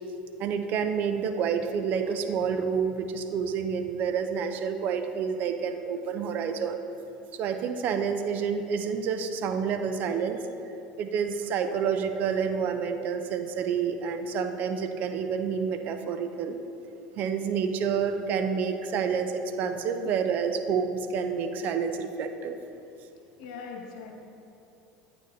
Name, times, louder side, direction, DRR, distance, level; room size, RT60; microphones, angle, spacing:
voice 1, 0.4-6.8 7.3-10.4 11.0-16.6 17.2-22.6, right 6 dB, 55° right, 8 dB, 0.6 m, -29 dB
voice 2, 23.4-24.2, left 5 dB, 75° left, 1 dB, 1.4 m, -41 dB
9.8 x 9.1 x 2.7 m, 2.8 s
supercardioid pair, 95°, 4 cm